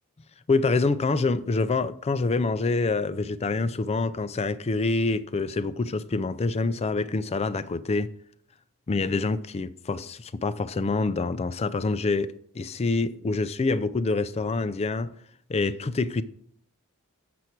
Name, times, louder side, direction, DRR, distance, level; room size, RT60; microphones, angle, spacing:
voice 1, 0.5-8.1 8.9-15.1 15.5-16.2, left 3 dB, 30° left, 0.4 m, -26 dB
7.8 x 7.0 x 4.5 m
head